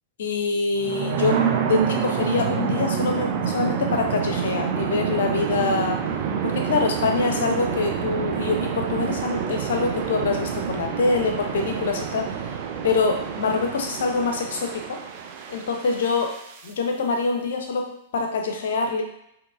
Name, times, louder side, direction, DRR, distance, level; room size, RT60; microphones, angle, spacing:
voice 1, 0.2-6.0 6.4-12.3 12.8-15.0 15.5-16.4 16.6-17.9 18.1-19.0, left 4 dB, 70° left, 3 dB, 0.6 m, -25 dB
sound 1, 0.7-16.7, right 7 dB, 50° right, 0.4 m, -27 dB
3.7 x 2.8 x 2.5 m, 0.76 s
hypercardioid pair, 110°, 0 cm